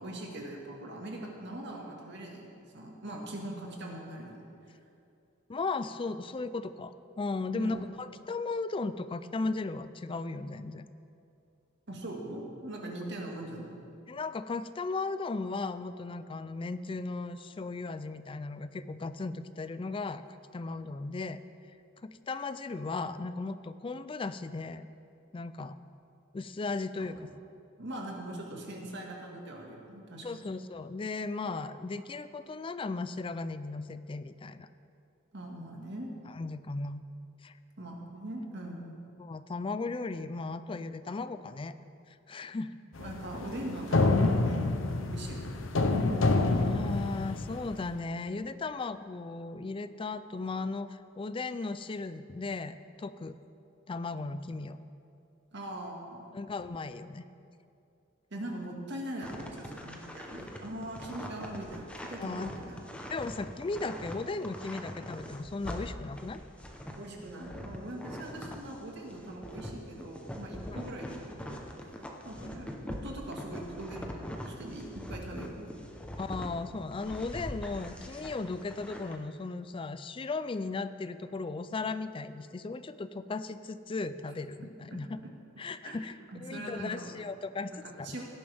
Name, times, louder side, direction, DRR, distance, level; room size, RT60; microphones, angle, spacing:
voice 1, 0.0-4.5 7.5-7.8 11.9-13.8 27.0-27.1 27.8-30.6 35.3-36.2 37.8-39.1 43.0-45.6 45.9-46.2 55.5-56.3 58.3-62.8 66.9-71.9 72.2-75.7 84.9-85.0 85.8-85.9 86.3-87.1 87.6-88.2, right 1 dB, 60° right, 0 dB, 1.8 m, -41 dB
voice 2, 5.5-10.9 14.1-20.2 20.5-21.4 22.0-24.9 25.3-25.7 26.3-27.2 30.2-34.7 36.3-37.0 37.4-37.5 39.2-41.7 42.1-42.7 46.6-53.4 53.9-54.8 56.3-57.2 62.2-62.5 63.1-66.4 70.7-70.8 72.4-72.6 76.2-85.2 85.6-86.1 86.4-88.2, left 3 dB, 25° left, 12 dB, 0.4 m, -36 dB
sound 1, 43.0-47.8, left 2 dB, 70° left, 0.7 m, -28 dB
sound 2, 59.2-68.7 69.1-76.5 76.9-79.2, equal, 5° left, 0.9 m, -42 dB
17.0 x 10.5 x 3.5 m, 2.6 s
head